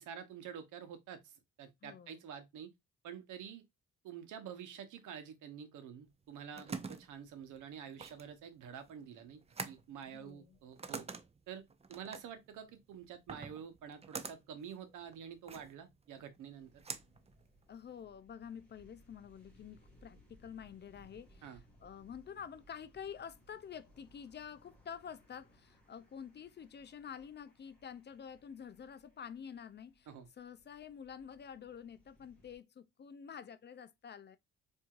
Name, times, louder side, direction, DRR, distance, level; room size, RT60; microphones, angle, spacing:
voice 1, 0.0-2.7 3.0-3.6 4.0-9.4 9.7-11.1 11.5-11.6 11.9-16.7 21.4-21.6 30.1-30.3, right 8 dB, 80° right, 0.9 m, -48 dB
voice 2, 1.8-2.2 10.1-10.6 17.7-30.1 30.4-34.4, left 7 dB, 35° left, 0.4 m, -49 dB
sound 1, 6.1-18.0, right 4 dB, 20° right, 0.5 m, -48 dB
sound 2, 16.6-32.6, equal, 5° left, 1.9 m, -66 dB
4.5 x 2.7 x 2.4 m
cardioid pair, 90°, 30 cm